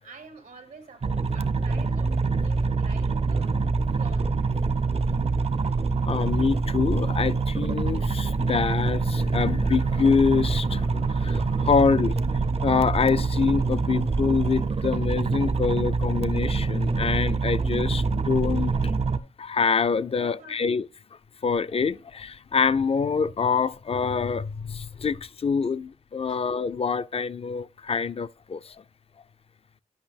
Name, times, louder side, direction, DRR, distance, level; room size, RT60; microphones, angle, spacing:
voice 1, 0.0-3.6 4.0-4.3 14.4-14.5 20.2-20.7 26.2-26.4, right 4 dB, 90° right, 1.3 m, -47 dB
sound 1, 1.0-19.2, right 4 dB, 45° right, 0.5 m, -25 dB
voice 2, 6.0-10.9 11.2-12.2 12.6-18.9 19.4-20.8 21.4-28.7, left 5 dB, 45° left, 0.4 m, -25 dB
10.5 x 5.3 x 3.4 m
cardioid pair, 50°, 14 cm